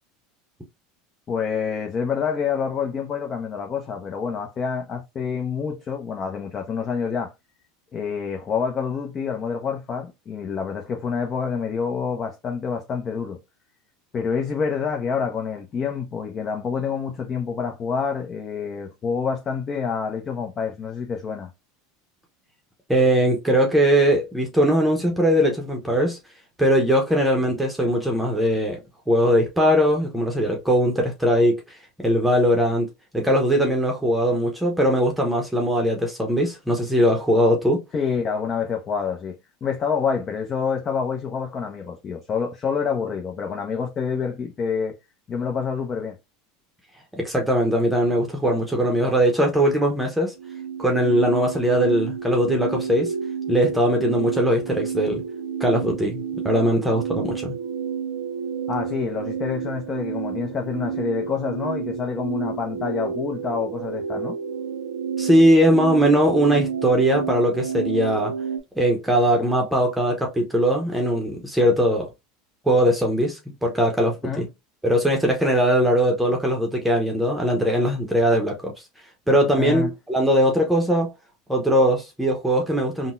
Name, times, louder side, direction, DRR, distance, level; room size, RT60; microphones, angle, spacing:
voice 1, 1.3-7.3 7.9-13.4 14.1-21.5 37.9-44.9 45.3-46.2 58.7-64.4 74.2-74.5 79.5-79.9, left 6 dB, 35° left, 0.7 m, -27 dB
voice 2, 22.9-26.2 26.6-28.8 29.1-31.6 32.0-32.9 33.1-37.8 47.2-50.3 50.8-53.1 53.5-55.2 55.6-57.5 65.2-68.3 68.8-72.1 72.7-74.5 74.8-78.7 79.3-81.1 81.5-83.1, equal, 5° right, 0.9 m, -20 dB
sound 1, 50.4-68.6, right 6 dB, 75° right, 0.5 m, -30 dB
3.8 x 2.2 x 2.5 m
hypercardioid pair, 95°, 0 cm